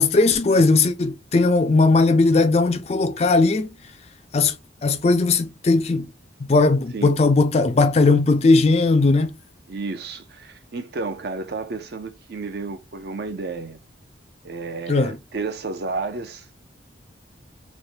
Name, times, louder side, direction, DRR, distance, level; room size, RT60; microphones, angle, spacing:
voice 1, 0.0-3.7 4.3-4.6 4.8-6.1 6.5-9.3 14.9-15.2, left 3 dB, 35° left, 0.3 m, -18 dB
voice 2, 9.7-13.8 14.4-16.5, right 3 dB, 55° right, 0.5 m, -31 dB
3.2 x 2.1 x 2.7 m
head